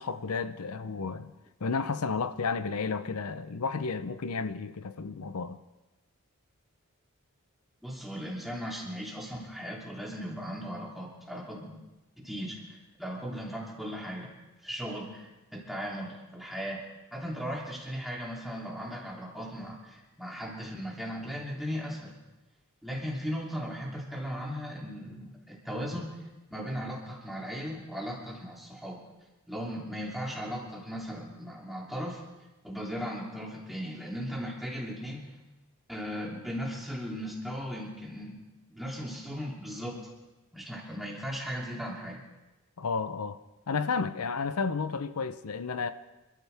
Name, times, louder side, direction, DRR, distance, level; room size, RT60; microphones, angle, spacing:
voice 1, 0.0-1.3 1.6-5.6 42.8-43.4 43.7-45.9, left 4 dB, 85° left, 0.6 m, -32 dB
voice 2, 7.8-11.8 12.2-14.3 14.6-16.8 17.1-22.1 22.8-26.1 26.5-29.0 29.5-32.2 32.6-35.3 35.9-38.4 38.7-40.0 40.5-42.2, equal, ahead, 3.0 m, -37 dB
27.0 x 13.5 x 3.5 m
head